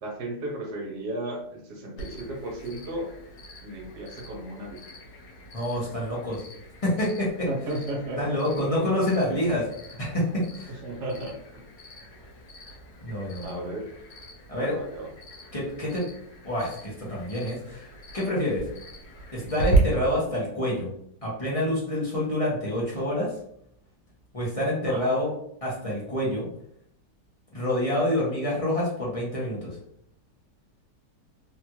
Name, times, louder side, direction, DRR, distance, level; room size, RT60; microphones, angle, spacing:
voice 1, 0.0-3.1 3.6-4.8 7.5-8.6 10.8-11.6 13.4-13.9 14.6-15.1 24.9-25.1, right 1 dB, 65° right, 0 dB, 1.3 m, -34 dB
Cricket, 2.0-19.8, right 3 dB, 80° left, 1.5 m, -39 dB
voice 2, 5.5-6.4 6.8-7.5 8.2-9.7 10.0-10.8 13.0-13.7 14.5-14.7 15.5-16.0 16.4-17.9 18.1-18.6 19.3-20.9 21.2-23.3 24.3-25.3 25.6-26.5 27.5-29.8, left 1 dB, 30° left, -6 dB, 0.6 m, -27 dB
3.3 x 2.5 x 2.9 m, 0.69 s
omnidirectional pair, 1.9 m